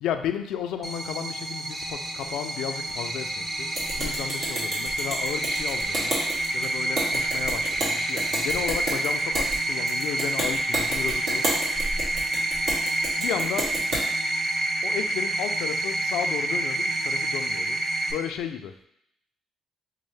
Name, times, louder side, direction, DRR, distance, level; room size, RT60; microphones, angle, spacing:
voice 1, 0.0-6.2 6.5-11.5 13.2-13.7 14.8-17.8 18.1-18.9, left 9 dB, 90° left, 8 dB, 0.3 m, -33 dB
sound 1, 0.8-18.1, right 2 dB, 25° right, 0.8 m, -28 dB
sound 2, 1.7-2.3 3.0-4.1 5.3-6.5 7.7-8.8, equal, ahead, 0.4 m, -38 dB
sound 3, 3.7-14.0, right 1 dB, 75° right, 1.5 m, -31 dB
5.4 x 2.0 x 3.2 m, 0.74 s
cardioid pair, 90°, 0 cm